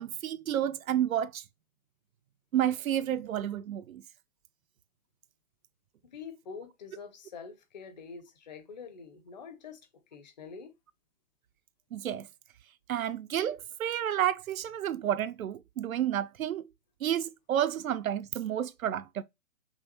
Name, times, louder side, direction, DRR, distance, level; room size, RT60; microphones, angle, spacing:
voice 1, 0.0-1.4 2.5-4.0 11.9-12.3 12.9-16.7 17.0-19.2, right 10 dB, 85° right, 0.5 m, -30 dB
voice 2, 6.1-9.8 10.1-10.7, left 5 dB, 35° left, 0.7 m, -45 dB
5.6 x 2.3 x 2.8 m
hypercardioid pair, 150°, 40 cm